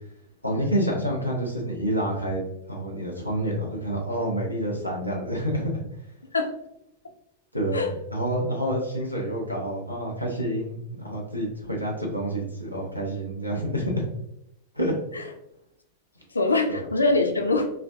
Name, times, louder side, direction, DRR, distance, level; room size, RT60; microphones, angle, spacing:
voice 1, 0.4-2.4 2.7-5.8 7.5-14.1 14.7-14.9 15.2-15.3 16.7-16.8, equal, 90° right, -1 dB, 0.6 m, -28 dB
voice 2, 16.3-17.7, left 2 dB, 75° left, 5 dB, 0.3 m, -23 dB
3.3 x 2.2 x 2.4 m, 0.80 s
figure-of-eight pair, 90°, 0 cm